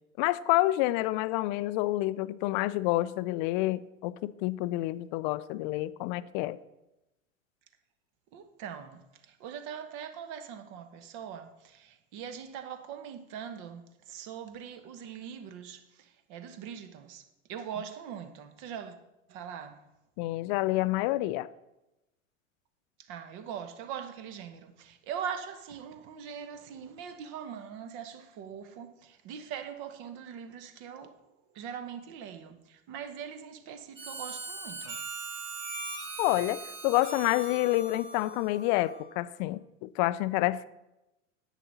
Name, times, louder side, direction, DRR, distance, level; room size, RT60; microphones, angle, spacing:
voice 1, 0.2-6.6 20.2-21.5 36.2-40.6, left 17 dB, 40° left, 0.4 m, -28 dB
voice 2, 8.3-17.2 17.5-19.0 19.3-19.8 23.0-31.2 31.5-35.0, right 8 dB, 45° right, 1.2 m, -42 dB
Harmonica, 33.9-39.1, right 2 dB, 30° right, 2.4 m, -40 dB
10.0 x 8.2 x 4.1 m
hypercardioid pair, 95°, 40 cm